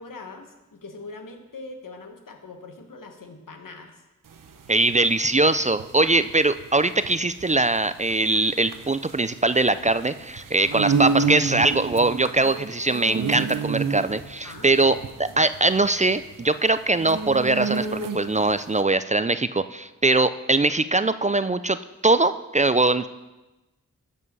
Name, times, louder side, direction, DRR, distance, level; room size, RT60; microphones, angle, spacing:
voice 1, 0.0-4.0 10.6-10.9 14.4-14.7, left 3 dB, 80° left, 4 dB, 1.3 m, -42 dB
sound 1, 4.3-18.5, right 5 dB, 80° right, 0.8 m, -29 dB
voice 2, 4.7-21.8 22.0-23.1, right 2 dB, 25° right, 13 dB, 0.4 m, -22 dB
12.5 x 5.6 x 5.4 m, 1.1 s
cardioid pair, 45°, 32 cm